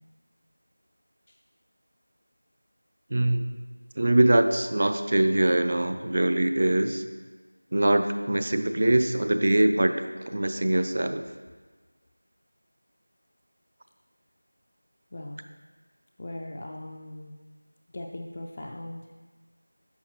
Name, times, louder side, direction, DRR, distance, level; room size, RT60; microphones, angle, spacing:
voice 1, 3.1-3.5 4.0-7.0 7.7-9.9 10.3-11.2, right 1 dB, 35° right, 8 dB, 0.5 m, -23 dB
voice 2, 15.1-15.5 16.2-17.3 17.9-19.0, left 1 dB, 30° left, 1 dB, 0.4 m, -39 dB
11.0 x 7.2 x 3.0 m, 1.4 s
figure-of-eight pair, 175°, 0 cm